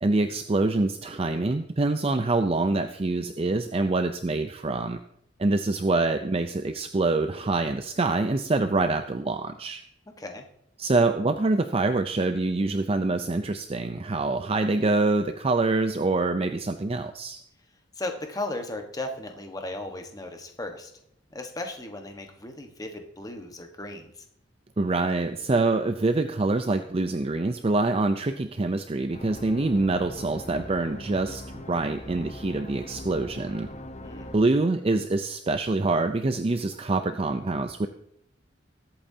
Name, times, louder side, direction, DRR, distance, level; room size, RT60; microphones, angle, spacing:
voice 1, 0.0-5.0 5.4-9.8 10.8-17.4 24.8-33.7 34.3-37.9, right 2 dB, 30° right, 8 dB, 0.5 m, -25 dB
voice 2, 18.0-20.9 21.3-24.1 34.0-34.3, left 2 dB, 20° left, 4 dB, 1.3 m, -36 dB
sound 1, 29.1-34.4, left 1 dB, 35° left, 0.9 m, -41 dB
21.0 x 8.7 x 2.8 m, 0.74 s
head